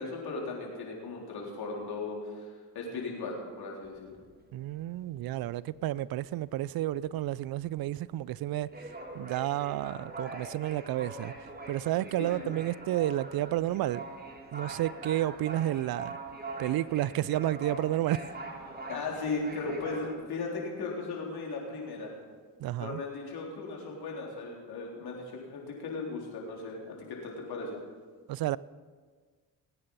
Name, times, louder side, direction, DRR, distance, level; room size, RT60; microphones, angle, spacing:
voice 1, 0.0-4.1 12.2-12.5 18.9-22.1 22.8-27.8, left 3 dB, 65° left, 4.0 m, -37 dB
sound 1, 3.8-5.1 5.4-5.6 5.9-20.1, right 2 dB, 25° right, 2.5 m, -43 dB
voice 2, 4.5-14.0 14.5-16.2 16.6-18.2 22.6-23.0 28.3-28.6, right 14 dB, 60° right, 0.5 m, -31 dB
19.5 x 9.2 x 5.5 m
supercardioid pair, 60°, 41 cm